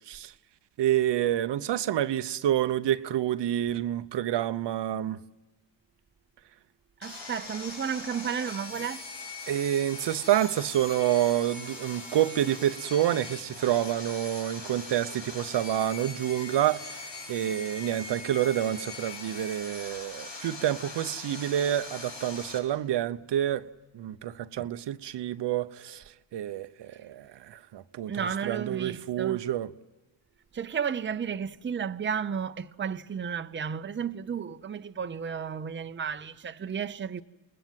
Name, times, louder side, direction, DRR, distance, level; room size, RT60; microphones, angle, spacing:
voice 1, 0.8-5.2 9.5-23.7 23.9-26.0 26.3-29.7, right 12 dB, 65° right, 0.8 m, -28 dB
Sawing, 7.0-22.6, left 3 dB, 80° left, 7.2 m, -41 dB
voice 2, 7.0-9.0 24.6-24.7 28.1-29.4 30.5-37.2, right 7 dB, 25° right, 0.8 m, -33 dB
28.5 x 19.5 x 7.5 m
cardioid pair, 85°, 45 cm